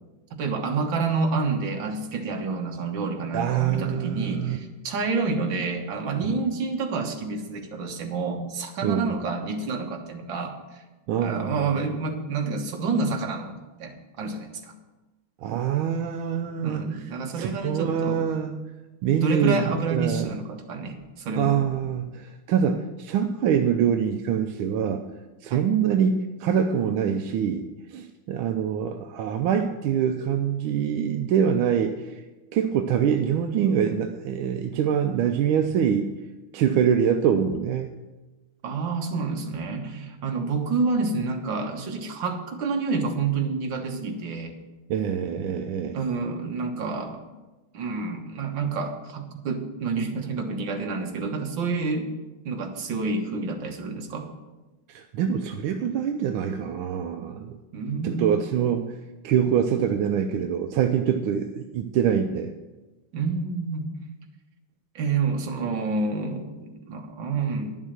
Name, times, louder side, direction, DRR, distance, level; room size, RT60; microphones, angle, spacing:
voice 1, 0.3-10.6 11.2-13.5 13.8-14.7 16.6-18.3 19.2-21.6 25.5-25.7 38.6-44.5 45.9-47.2 47.7-52.1 52.5-54.3 57.7-58.4 63.1-63.9 65.0-67.8, right 4 dB, 70° right, 3 dB, 1.9 m, -28 dB
voice 2, 3.3-4.6 6.2-6.4 8.8-9.1 11.1-11.6 15.4-17.0 17.3-18.6 19.0-20.3 21.4-25.0 25.4-27.7 27.9-32.2 32.5-36.1 36.5-37.9 44.9-46.0 54.9-57.6 58.0-59.0 59.2-62.5, right 8 dB, 85° right, 6 dB, 1.5 m, -24 dB
10.5 x 7.3 x 6.6 m, 1.1 s
omnidirectional pair, 2.3 m